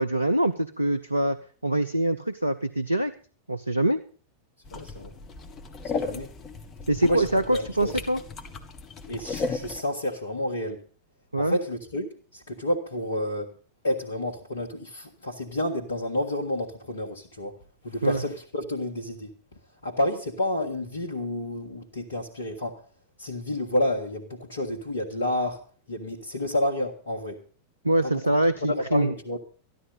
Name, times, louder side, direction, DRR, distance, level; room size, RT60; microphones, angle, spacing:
voice 1, 0.0-1.4 1.6-3.1 3.5-4.0 6.9-8.2 11.3-11.6 18.0-18.2 27.8-29.1, right 1 dB, 85° right, 0.7 m, -24 dB
voice 2, 4.7-5.1 5.8-6.3 7.0-7.9 9.1-10.8 11.4-13.5 13.8-17.6 17.8-19.3 19.8-22.8 23.2-25.6 25.9-27.4 28.0-28.2 28.6-29.4, left 1 dB, 65° left, 1.7 m, -30 dB
sound 1, 4.7-9.8, left 4 dB, 30° left, 1.7 m, -35 dB
13.5 x 12.0 x 5.5 m
figure-of-eight pair, 90°, 0 cm